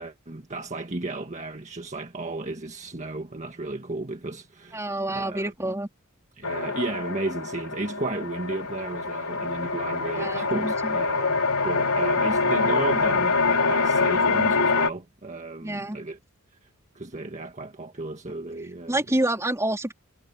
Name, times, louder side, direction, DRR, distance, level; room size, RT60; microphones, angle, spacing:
voice 1, 0.0-5.5 6.4-16.2 17.0-19.0, right 2 dB, 35° right, 1.6 m, -34 dB
voice 2, 4.7-5.9 10.1-11.0 15.6-16.0 18.9-19.9, right 1 dB, 15° right, 3.2 m, -28 dB
sound 1, 6.4-14.9, left 4 dB, 85° left, 3.7 m, -25 dB
head